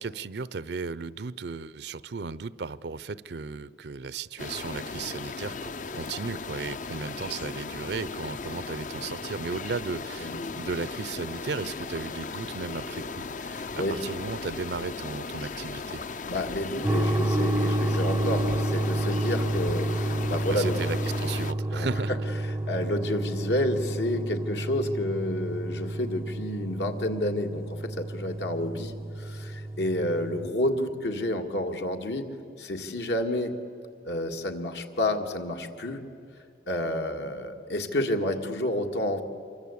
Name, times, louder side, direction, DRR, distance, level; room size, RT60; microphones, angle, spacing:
voice 1, 0.0-16.0 20.5-22.1, right 4 dB, 70° right, 0.6 m, -35 dB
sound 1, 4.4-21.5, left 4 dB, 45° left, 0.5 m, -37 dB
voice 2, 13.5-13.9 16.3-20.8 21.7-22.0 22.7-32.3 32.6-33.5 34.1-36.0 36.7-39.2, left 1 dB, 75° left, 2.1 m, -30 dB
sound 2, 16.8-30.5, right 1 dB, 15° right, 0.5 m, -30 dB
26.5 x 23.5 x 8.5 m
head